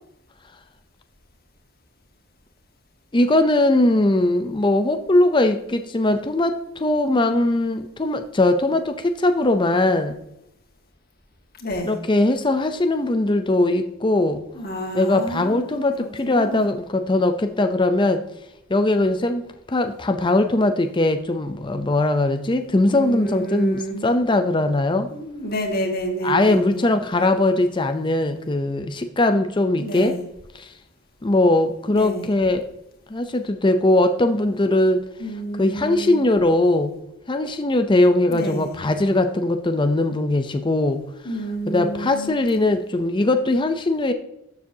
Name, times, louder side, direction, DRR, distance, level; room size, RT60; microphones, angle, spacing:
voice 1, 3.1-10.1 11.9-14.4 14.9-18.2 18.7-19.4 19.7-25.1 26.2-30.1 30.6-30.7 31.2-32.7 33.1-35.1 35.6-36.9 37.3-41.0 41.7-44.1, left 2 dB, 20° left, 7 dB, 0.6 m, -20 dB
voice 2, 11.6-12.0 14.5-16.7 22.9-24.1 25.1-26.9 29.8-30.2 31.9-32.3 35.2-36.3 38.3-38.7 41.2-42.5, right 1 dB, 45° left, 2 dB, 1.9 m, -29 dB
12.5 x 7.1 x 2.8 m, 0.83 s
head